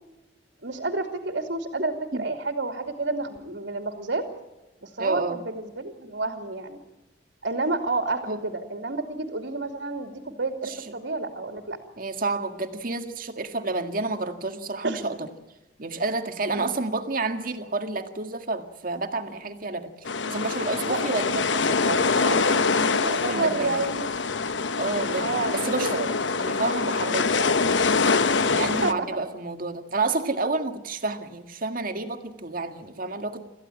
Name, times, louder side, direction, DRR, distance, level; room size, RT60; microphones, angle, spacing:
voice 1, 0.6-4.2 4.8-6.8 7.4-11.8 14.8-15.0 16.6-16.7 20.8-21.0 22.9-24.1 25.2-25.5 25.8-26.1 28.8-29.1, right 3 dB, 85° right, 5 dB, 2.7 m, -30 dB
voice 2, 5.0-5.4 8.3-8.4 10.6-10.8 12.0-15.3 15.8-23.8 24.8-26.0 26.4-27.6 28.4-33.4, right 3 dB, 50° right, 7 dB, 1.8 m, -30 dB
sound 1, 20.0-28.9, left 4 dB, 90° left, 1.0 m, -24 dB
26.5 x 15.0 x 8.7 m, 1.0 s
head